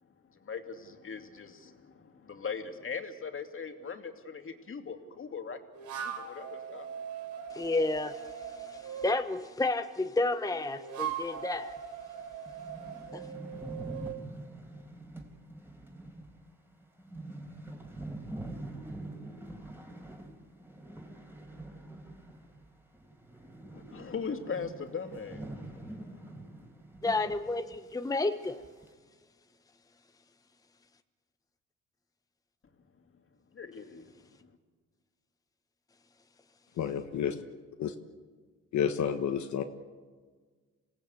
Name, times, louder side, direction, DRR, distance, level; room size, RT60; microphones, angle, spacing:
voice 1, 0.3-5.7 6.0-6.9 23.7-26.2 33.5-34.1 34.4-34.5, left 5 dB, 45° left, 2.6 m, -40 dB
sound 1, 5.7-9.2 10.5-14.2, right 7 dB, 80° right, 3.4 m, -40 dB
voice 2, 7.5-11.8 13.1-13.2 27.0-28.6, left 2 dB, 10° left, 0.9 m, -31 dB
sound 2, 11.8-11.9 12.2-12.3 12.5-22.7 22.9-27.4 27.7-27.8 28.4-28.9, right 1 dB, 5° right, 3.8 m, -45 dB
voice 3, 36.8-37.4 37.8-37.9 38.7-39.6, left 8 dB, 70° left, 1.3 m, -30 dB
27.0 x 17.5 x 8.3 m
cardioid pair, 90°, 30 cm